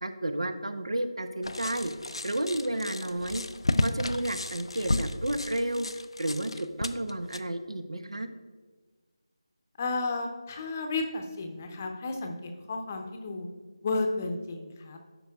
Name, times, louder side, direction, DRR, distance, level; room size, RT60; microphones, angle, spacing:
voice 1, 0.0-1.9 2.2-3.4 3.8-5.9 6.2-8.3, right 1 dB, 85° right, 9 dB, 0.8 m, -31 dB
sound 1, 1.4-7.4, left 2 dB, 80° left, 0.5 m, -33 dB
voice 2, 9.8-13.5 13.8-15.0, left 3 dB, 25° left, 4 dB, 0.7 m, -32 dB
12.5 x 5.5 x 2.4 m, 1.4 s
figure-of-eight pair, 165°, 3 cm